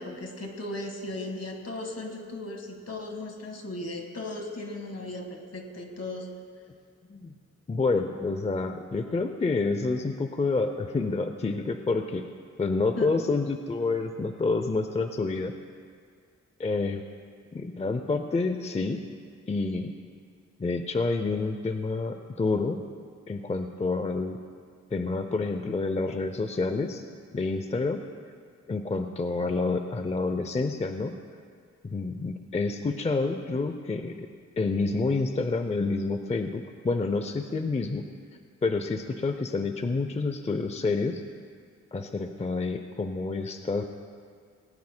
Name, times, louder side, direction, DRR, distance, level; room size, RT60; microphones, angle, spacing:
voice 1, 0.0-6.3 13.0-13.1, left 2 dB, 55° left, 3 dB, 1.7 m, -37 dB
voice 2, 7.7-12.3 12.6-15.5 16.6-17.0 17.5-19.0 19.5-19.9 20.6-22.8 23.3-24.4 24.9-27.0 27.3-28.1 28.7-31.1 31.8-34.3 34.6-38.1 38.6-41.2 41.9-43.8, left 3 dB, 25° left, 7 dB, 0.5 m, -28 dB
19.0 x 18.5 x 2.2 m, 2.1 s
wide cardioid pair, 135°, 29 cm